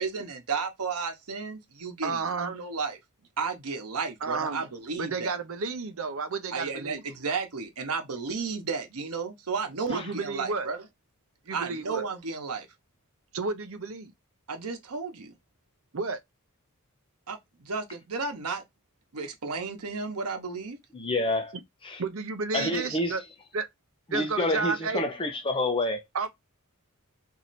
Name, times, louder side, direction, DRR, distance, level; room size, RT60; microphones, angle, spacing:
voice 1, 0.0-3.0 3.4-5.3 6.5-10.8 11.5-12.7 14.5-15.3 17.3-18.6 19.1-20.8, right 4 dB, 90° right, 0.9 m, -33 dB
voice 2, 2.0-2.5 4.2-4.6 5.0-7.0 9.9-10.7 11.5-12.1 13.3-14.1 15.9-16.2 22.0-23.2 23.5-23.7 24.1-25.0 26.1-26.3, right 4 dB, 65° right, 0.6 m, -31 dB
voice 3, 20.9-21.5 21.8-22.0 22.5-23.2 24.1-26.0, left 1 dB, 25° left, 0.7 m, -28 dB
3.1 x 2.7 x 4.1 m
head